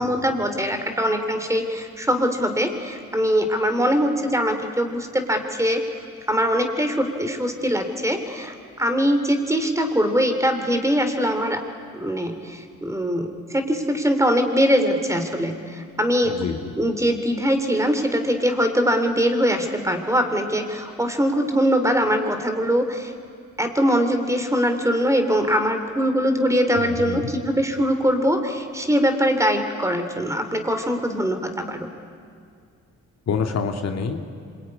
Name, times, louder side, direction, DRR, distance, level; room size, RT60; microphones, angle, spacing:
voice 1, 0.0-5.8 6.3-11.6 11.9-16.4 16.8-23.1 23.6-31.9, equal, 10° right, 7 dB, 3.2 m, -22 dB
voice 2, 16.2-16.7 26.7-27.3 33.3-34.2, left 5 dB, 60° left, 4 dB, 2.3 m, -27 dB
26.0 x 22.5 x 9.8 m, 2.2 s
cardioid pair, 90°, 30 cm